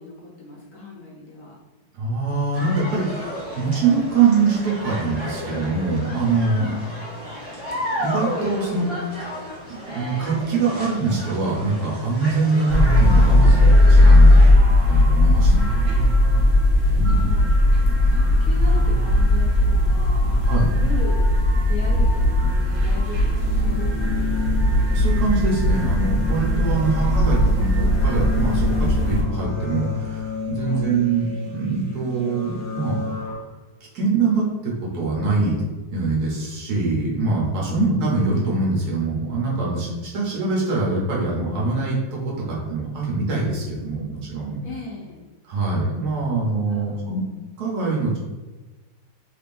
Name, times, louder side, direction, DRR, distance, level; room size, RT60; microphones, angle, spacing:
voice 1, 0.0-1.6 6.5-6.8 15.4-16.1 16.9-17.5 18.1-20.4 20.8-21.3 21.6-24.6 26.7-27.6 30.6-30.9 37.6-37.9 44.6-45.3 46.7-47.2, left 3 dB, 65° left, -3 dB, 1.0 m, -37 dB
voice 2, 1.9-6.7 8.0-9.2 9.7-14.4 14.9-15.6 16.9-17.3 17.9-18.0 20.4-20.7 24.9-32.9 33.9-35.6 35.9-44.6 45.5-47.2 47.6-48.2, right 4 dB, 65° right, -4 dB, 1.3 m, -23 dB
sound 1, 2.5-14.5, left 1 dB, 20° right, 0.8 m, -33 dB
sound 2, 12.7-29.2, left 1 dB, 35° right, 1.6 m, -17 dB
sound 3, 23.3-33.3, left 8 dB, 50° left, 1.6 m, -31 dB
3.6 x 3.2 x 2.5 m, 1.2 s
omnidirectional pair, 1.9 m